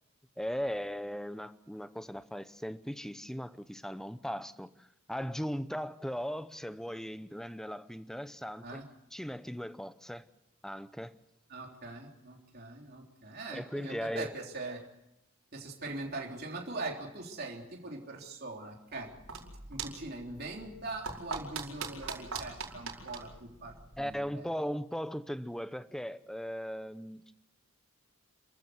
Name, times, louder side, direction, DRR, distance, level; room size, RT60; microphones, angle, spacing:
voice 1, 0.4-8.8 9.1-10.2 10.6-11.2 13.5-14.3 24.0-27.2, equal, ahead, 0.7 m, -38 dB
voice 2, 11.5-14.9 15.5-19.1 19.7-24.5, right 2 dB, 45° right, 3.6 m, -42 dB
sound 1, 18.9-24.3, right 4 dB, 80° right, 4.9 m, -42 dB
29.0 x 14.5 x 7.9 m
head